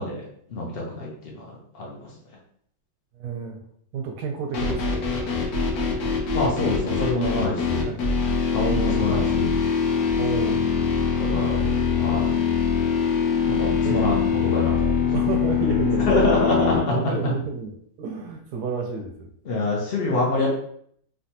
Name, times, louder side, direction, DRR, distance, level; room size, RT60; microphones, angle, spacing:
voice 1, 0.0-2.0 6.3-7.9 8.5-9.6 11.2-11.6 12.0-12.3 13.5-15.1 16.1-17.3 19.5-20.5, left 2 dB, 75° left, -3 dB, 0.5 m, -26 dB
voice 2, 3.2-3.6 3.9-5.3 7.8-8.0 8.7-9.4 10.2-10.8 11.5-12.2 13.8-14.1 15.1-16.4 16.9-17.7 18.0-19.3, right 4 dB, 70° right, 3 dB, 1.0 m, -31 dB
sound 1, 4.5-16.8, left 6 dB, 60° left, 0.9 m, -23 dB
3.3 x 2.7 x 2.7 m, 0.65 s
omnidirectional pair, 2.0 m